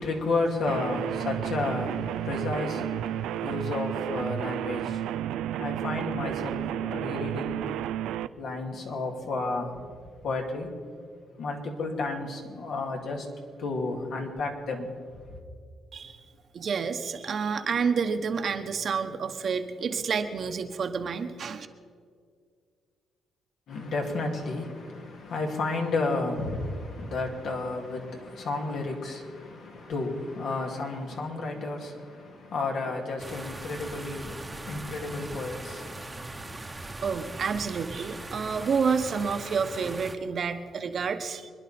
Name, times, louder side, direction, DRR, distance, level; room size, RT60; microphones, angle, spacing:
voice 1, 0.0-8.0 8.4-9.8 10.2-10.7 11.4-13.3 13.6-14.9 23.7-36.6, left 3 dB, 65° left, 2.6 m, -32 dB
sound 1, 0.7-8.3, right 11 dB, 90° right, 0.4 m, -32 dB
voice 2, 16.5-21.7 37.0-41.5, right 5 dB, 55° right, 1.1 m, -29 dB
sound 2, 33.2-40.2, right 2 dB, 15° right, 1.1 m, -40 dB
25.5 x 10.5 x 4.4 m
cardioid pair, 90°, 0 cm